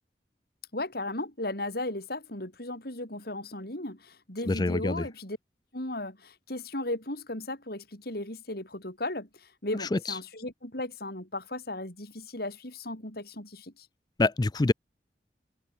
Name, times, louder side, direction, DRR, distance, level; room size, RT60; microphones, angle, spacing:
voice 1, 0.7-5.4 5.7-13.9, left 1 dB, 60° left, 6.8 m, -36 dB
voice 2, 4.5-5.1 9.9-10.0 14.2-14.7, left 2 dB, 25° left, 0.5 m, -25 dB
head